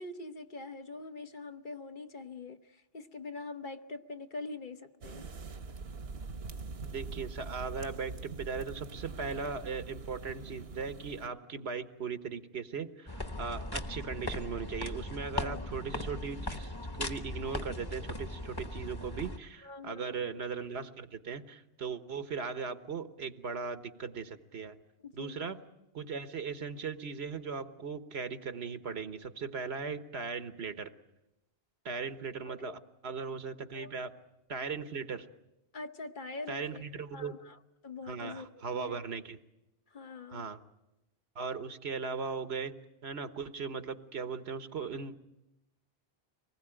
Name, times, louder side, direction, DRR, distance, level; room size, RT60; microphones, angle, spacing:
voice 1, 0.0-5.3 15.4-15.7 19.6-20.2 25.0-25.5 32.4-32.7 33.7-33.9 35.7-36.8 37.1-37.6 37.8-39.0 39.9-40.5, left 3 dB, 55° left, 9 dB, 1.1 m, -44 dB
sound 1, 5.0-11.3, right 4 dB, 75° right, 1.3 m, -43 dB
voice 2, 6.8-16.7 17.0-24.8 25.1-25.6 25.9-30.9 31.8-34.1 34.5-35.3 36.5-37.4 38.1-39.4 40.3-40.6 41.3-42.7 43.0-45.1, right 5 dB, 90° right, 10 dB, 1.4 m, -38 dB
sound 2, 13.1-19.4, left 1 dB, 25° left, 1.1 m, -38 dB
25.0 x 20.0 x 9.0 m, 0.94 s
omnidirectional pair, 1.0 m